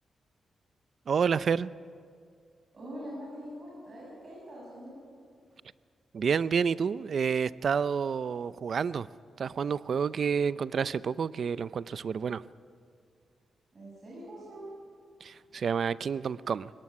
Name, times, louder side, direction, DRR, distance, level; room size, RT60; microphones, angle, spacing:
voice 1, 1.1-1.7 6.1-9.1 9.4-12.4 15.2-16.7, right 6 dB, 60° right, 0.6 m, -29 dB
voice 2, 2.7-5.0 13.7-14.7, equal, 40° right, 7.6 m, -43 dB
22.0 x 18.5 x 9.8 m
cardioid pair, 105°, 0 cm